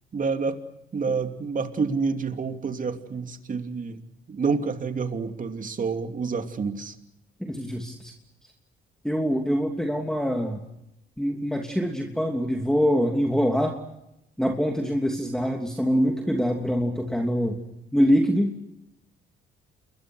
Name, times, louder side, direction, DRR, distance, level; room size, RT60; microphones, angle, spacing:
voice 1, 0.1-0.6 0.9-4.0 4.3-6.9, right 5 dB, 40° right, 7 dB, 2.8 m, -28 dB
voice 2, 7.4-8.1 9.0-10.6 11.2-13.8 14.4-17.6 17.9-18.7, equal, 5° left, 2 dB, 2.9 m, -24 dB
28.5 x 22.0 x 6.3 m, 0.86 s
cardioid pair, 90°, 20 cm